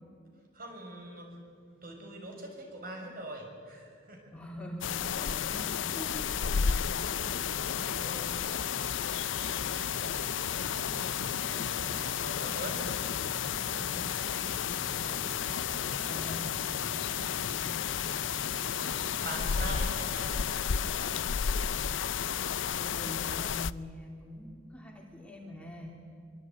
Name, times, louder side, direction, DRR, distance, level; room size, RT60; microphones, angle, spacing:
voice 1, 0.5-4.3 5.4-5.7 6.4-16.5 16.9-17.6 18.8-20.4 20.7-21.2, right 1 dB, 45° right, 2 dB, 6.3 m, -45 dB
voice 2, 4.3-6.6 6.9-7.1 13.7-14.0 16.1-16.6 17.5-17.8 22.8-26.0, left 1 dB, 5° left, 0 dB, 2.8 m, -44 dB
sound 1, 4.8-23.7, left 8 dB, 75° left, 0.6 m, -32 dB
sound 2, 9.4-20.6, right 2 dB, 85° right, 3.5 m, -49 dB
24.0 x 23.5 x 9.6 m, 2.4 s
head